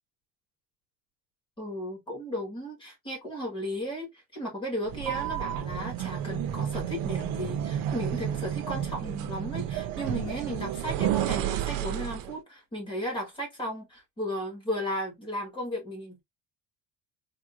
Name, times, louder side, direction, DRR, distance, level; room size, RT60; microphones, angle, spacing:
voice 1, 1.6-16.2, equal, 15° left, 1.3 m, -35 dB
sound 1, 4.9-12.4, right 11 dB, 90° right, 0.6 m, -31 dB
3.5 x 2.5 x 2.4 m
cardioid pair, 180°, 35 cm